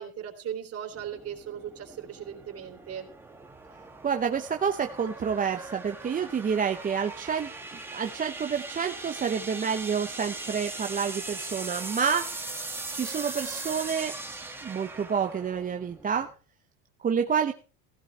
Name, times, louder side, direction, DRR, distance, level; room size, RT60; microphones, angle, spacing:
voice 1, 0.0-3.1, right 9 dB, 35° right, 3 dB, 3.5 m, -38 dB
sound 1, 0.9-16.3, right 2 dB, 5° right, 1.8 m, -40 dB
voice 2, 4.0-7.5 7.9-12.3 12.9-14.1 14.6-16.3 17.0-17.5, right 6 dB, 20° right, 5 dB, 0.8 m, -28 dB
16.5 x 16.0 x 3.3 m, 0.36 s
supercardioid pair, 115°, 40 cm